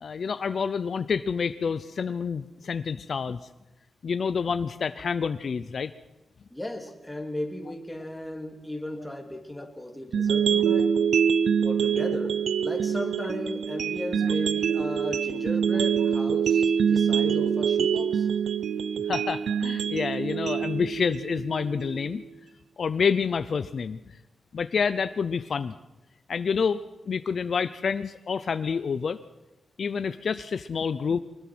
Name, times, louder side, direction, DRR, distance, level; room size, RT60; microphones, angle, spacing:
voice 1, 0.0-3.4 4.0-5.9 19.1-22.2 22.8-24.0 24.5-25.7 26.3-29.2 29.8-31.2, left 6 dB, 50° left, 12 dB, 0.6 m, -28 dB
voice 2, 6.5-10.9 11.6-18.3, left 1 dB, 5° left, 3 dB, 2.8 m, -36 dB
sound 1, 10.1-22.1, right 7 dB, 70° right, 0.7 m, -25 dB
23.5 x 20.5 x 6.2 m, 1.0 s
wide cardioid pair, 155°, 0 cm